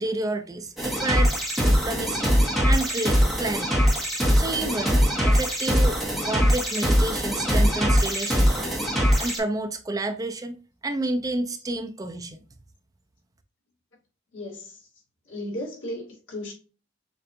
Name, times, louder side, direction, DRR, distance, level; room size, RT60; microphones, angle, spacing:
voice 1, 0.0-1.3 1.6-2.3 2.6-3.8 4.3-8.7 9.2-10.6 10.8-12.4, right 2 dB, 20° right, 0.4 m, -30 dB
sound 1, 0.8-9.4, equal, ahead, 1.0 m, -22 dB
voice 2, 14.3-14.9 15.3-16.5, left 1 dB, 85° left, 2.4 m, -35 dB
6.8 x 2.5 x 2.5 m
head